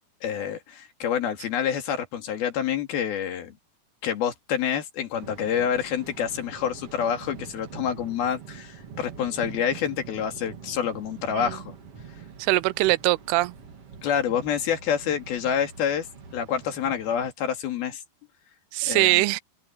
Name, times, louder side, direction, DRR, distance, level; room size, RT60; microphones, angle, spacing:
voice 1, 0.2-3.5 4.0-11.8 14.0-16.1 16.3-18.0 18.8-19.2, left 8 dB, 70° left, 4.1 m, -27 dB
Thunder, 5.1-17.3, right 7 dB, 40° right, 2.9 m, -44 dB
voice 2, 12.4-13.5 18.7-19.4, right 20 dB, 85° right, 2.6 m, -22 dB
omnidirectional pair, 4.5 m